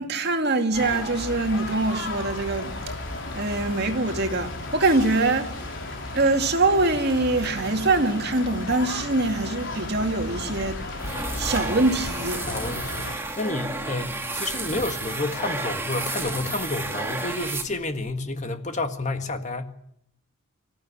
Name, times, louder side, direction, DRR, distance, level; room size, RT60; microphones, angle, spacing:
voice 1, 0.0-2.7 3.3-5.5 6.1-12.4, right 2 dB, 50° right, 2.4 m, -24 dB
sound 1, 0.7-13.1, left 2 dB, 55° left, 4.9 m, -34 dB
sound 2, 11.0-18.1, right 2 dB, 10° right, 2.5 m, -32 dB
voice 2, 12.5-19.7, left 2 dB, 35° left, 1.7 m, -30 dB
25.0 x 14.5 x 9.9 m
head